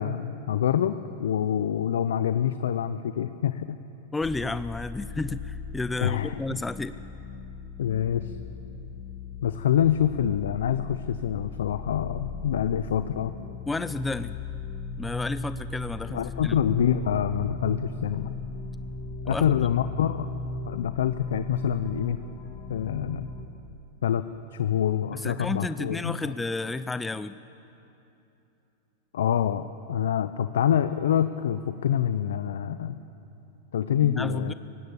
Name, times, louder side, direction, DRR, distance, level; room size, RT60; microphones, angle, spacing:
voice 1, 0.0-3.8 6.0-6.6 7.8-8.3 9.4-13.3 16.1-18.3 19.3-20.3 20.7-22.2 22.7-23.3 24.0-24.2 24.5-26.3 29.1-33.0 33.7-34.5, left 9 dB, 80° left, 12 dB, 0.6 m, -26 dB
voice 2, 4.1-6.9 13.7-14.4 15.0-16.6 19.3-19.5 25.1-27.3 34.0-34.5, left 3 dB, 10° left, 13 dB, 0.5 m, -31 dB
sound 1, 4.2-23.5, left 3 dB, 50° left, 2.7 m, -38 dB
19.5 x 17.0 x 8.2 m, 2.9 s
hypercardioid pair, 110°, 0 cm